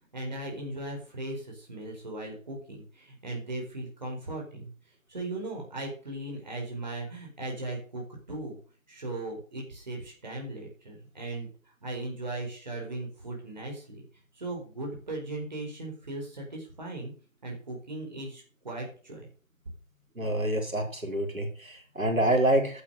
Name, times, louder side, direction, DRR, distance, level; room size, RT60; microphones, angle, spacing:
voice 1, 0.1-4.6 5.1-8.6 8.9-11.5 11.8-14.0 14.3-17.1 17.4-19.3, right 2 dB, 35° right, 0 dB, 4.5 m, -38 dB
voice 2, 20.2-22.8, right 1 dB, 80° right, 2 dB, 4.8 m, -27 dB
11.5 x 8.3 x 6.5 m, 0.40 s
figure-of-eight pair, 165°, 40 cm